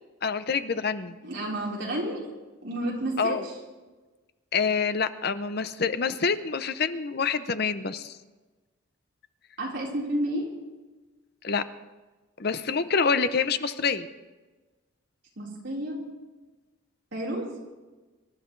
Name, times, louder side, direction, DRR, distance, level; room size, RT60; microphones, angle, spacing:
voice 1, 0.2-1.2 3.2-3.4 4.5-8.2 11.4-11.6 12.4-14.1, left 5 dB, 50° left, 11 dB, 0.7 m, -26 dB
voice 2, 1.2-2.2 2.6-3.4 9.6-10.5 15.4-16.0 17.1-17.5, right 1 dB, 55° right, -4 dB, 4.2 m, -30 dB
26.0 x 12.5 x 3.2 m, 1.2 s
head